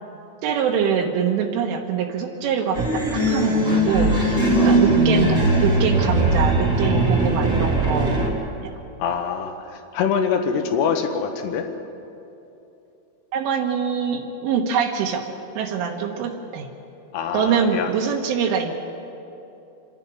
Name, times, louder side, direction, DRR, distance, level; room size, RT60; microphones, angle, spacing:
voice 1, 0.4-8.2 13.3-15.2 15.6-16.7 17.3-18.7, right 7 dB, 80° right, 2 dB, 3.7 m, -24 dB
sound 1, 2.7-8.3, right 1 dB, 20° right, 1.8 m, -19 dB
voice 2, 9.0-11.7 17.1-17.9, left 6 dB, 70° left, 6 dB, 2.7 m, -24 dB
27.5 x 11.0 x 9.9 m, 2.8 s
omnidirectional pair, 5.8 m